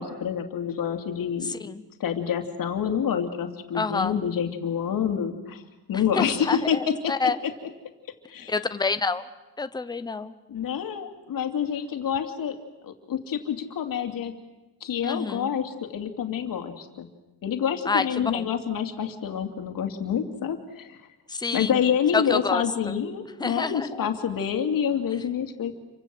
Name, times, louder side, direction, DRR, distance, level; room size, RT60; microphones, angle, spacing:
voice 1, 0.0-1.5 2.0-5.6 5.9-7.1 7.4-7.5 8.3-8.5 10.5-12.6 12.8-14.3 14.8-17.1 17.4-21.0 21.5-25.7, left 8 dB, 55° left, 5 dB, 2.7 m, -27 dB
voice 2, 1.4-1.8 3.7-4.2 6.1-7.4 8.5-9.2 9.6-10.3 15.0-15.5 17.9-18.5 21.3-21.8 22.1-22.9 23.4-24.1, left 4 dB, 10° left, 10 dB, 0.9 m, -28 dB
29.0 x 24.5 x 7.8 m, 1.1 s
cardioid pair, 165°, 40 cm